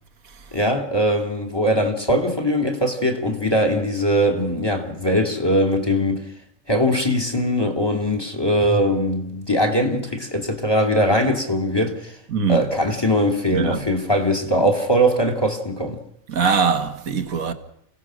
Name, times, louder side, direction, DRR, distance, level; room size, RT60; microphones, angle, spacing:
voice 1, 0.5-6.2 6.7-12.2 12.5-16.0, equal, 15° left, 2.6 m, -21 dB
voice 2, 12.3-12.6 13.5-13.8 16.3-17.5, right 6 dB, 75° right, 1.9 m, -21 dB
29.5 x 17.5 x 6.3 m
omnidirectional pair, 1.5 m